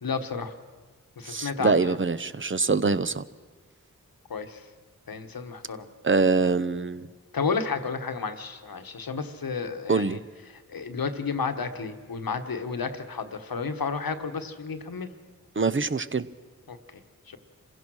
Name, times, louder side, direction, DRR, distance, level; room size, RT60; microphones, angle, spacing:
voice 1, 0.0-0.5 1.2-2.0 4.3-4.6 5.1-5.9 7.3-10.2 10.7-15.1 16.7-16.8 17.3-17.4, left 5 dB, 90° left, 7 dB, 1.3 m, -31 dB
voice 2, 1.3-3.2 6.0-7.1 9.9-10.2 15.6-16.3, right 4 dB, 35° right, 13 dB, 0.7 m, -24 dB
26.5 x 16.0 x 6.3 m, 1.4 s
wide cardioid pair, 50°, 34 cm